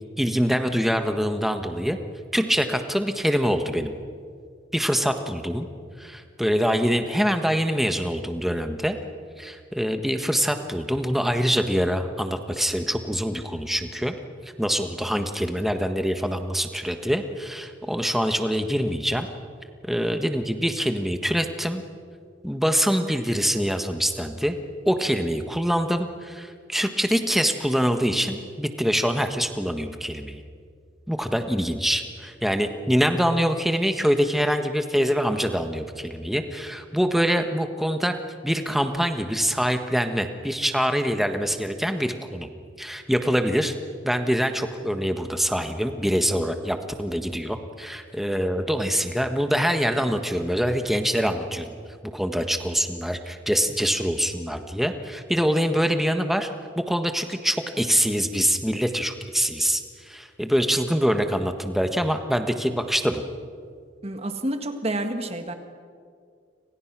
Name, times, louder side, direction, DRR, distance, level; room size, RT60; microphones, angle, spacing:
voice 1, 0.2-2.0 2.3-3.9 4.7-5.7 6.0-9.0 9.4-14.1 14.4-19.3 19.8-21.8 22.4-24.6 24.8-30.4 31.1-38.1 38.4-42.5 42.8-43.7 44.0-51.7 52.1-56.5 56.7-63.2, equal, ahead, 7 dB, 1.5 m, -24 dB
voice 2, 64.0-65.5, right 1 dB, 30° right, 7 dB, 1.8 m, -29 dB
29.5 x 26.0 x 6.2 m, 2.2 s
head